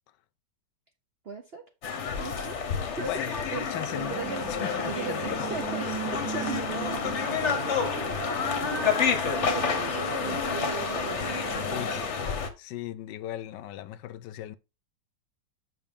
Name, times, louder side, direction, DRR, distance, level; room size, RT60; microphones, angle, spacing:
voice 1, 1.2-1.7 2.2-2.6 2.9-4.5 4.8-9.0 9.4-11.8, right 5 dB, 50° right, 0.7 m, -39 dB
sound 1, 1.8-12.5, left 6 dB, 45° left, 1.1 m, -29 dB
voice 2, 3.0-5.4 11.7-12.0 12.6-14.6, left 13 dB, 75° left, 1.2 m, -38 dB
sound 2, 4.1-12.1, right 7 dB, 90° right, 1.9 m, -38 dB
7.0 x 5.9 x 3.6 m
omnidirectional pair, 2.0 m